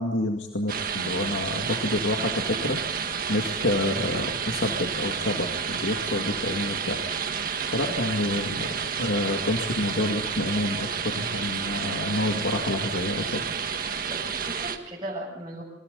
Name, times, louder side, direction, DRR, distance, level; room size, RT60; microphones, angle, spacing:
voice 1, 0.0-7.0 7.7-8.7 9.0-13.4, left 1 dB, 80° left, 2 dB, 2.2 m, -28 dB
sound 1, 0.7-14.8, right 6 dB, 50° right, 1.7 m, -30 dB
voice 2, 13.8-15.6, right 1 dB, 25° right, -4 dB, 6.9 m, -37 dB
27.5 x 25.0 x 4.0 m, 0.93 s
head